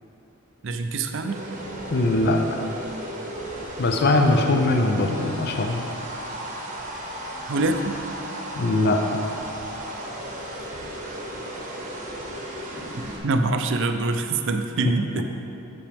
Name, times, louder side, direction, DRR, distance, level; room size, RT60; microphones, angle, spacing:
voice 1, 0.6-1.4 4.3-4.4 7.5-8.0 13.0-15.2, right 3 dB, 55° right, 6 dB, 0.5 m, -25 dB
sound 1, 1.2-13.2, right 1 dB, 35° right, 0.9 m, -35 dB
voice 2, 1.9-2.4 3.8-5.9 8.5-9.0, left 2 dB, 45° left, 3 dB, 0.5 m, -21 dB
8.0 x 7.6 x 3.5 m, 2.8 s
head